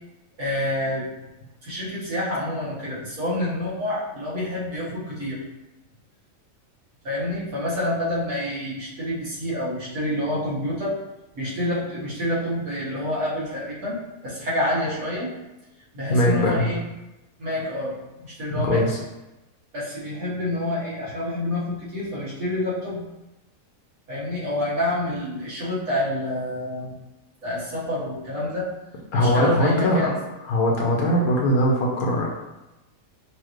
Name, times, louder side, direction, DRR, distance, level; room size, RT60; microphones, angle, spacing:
voice 1, 0.4-1.1 1.6-5.4 7.0-11.0 11.4-15.3 15.9-16.8 17.4-18.8 19.7-23.0 24.1-26.9 27.4-28.7 29.1-30.2, left 1 dB, 60° right, -9 dB, 2.0 m, -27 dB
voice 2, 16.1-16.7 18.6-19.0 29.1-30.1 30.5-32.3, equal, 65° left, -2 dB, 1.2 m, -21 dB
5.6 x 2.8 x 3.1 m, 0.99 s
omnidirectional pair, 1.7 m